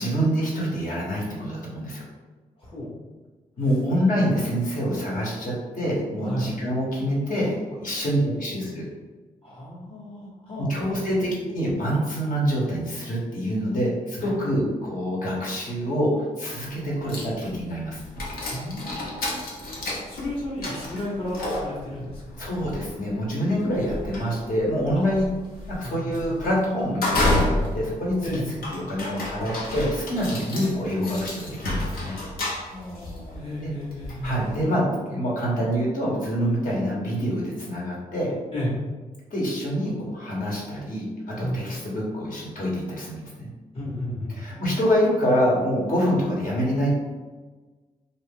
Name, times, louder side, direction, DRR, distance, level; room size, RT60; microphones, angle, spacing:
voice 1, 0.0-2.0 3.6-8.8 10.6-18.0 22.4-25.3 25.7-28.1 28.7-32.2 33.6-33.7 34.2-38.3 39.3-41.1 41.4-43.5 44.3-46.9, equal, 65° left, -5 dB, 1.3 m, -26 dB
voice 2, 2.6-3.0 6.2-6.5 9.4-11.3 14.2-14.3 18.5-19.4 19.8-22.5 24.9-25.0 25.8-26.1 28.2-28.4 32.4-34.4 38.5-38.7 41.4-41.5 43.7-44.4, left 1 dB, 35° left, -9 dB, 1.0 m, -33 dB
sound 1, 16.6-16.7 17.1-34.7, left 1 dB, 80° left, 0.8 m, -31 dB
2.7 x 2.4 x 3.6 m, 1.3 s
cardioid pair, 60°, 15 cm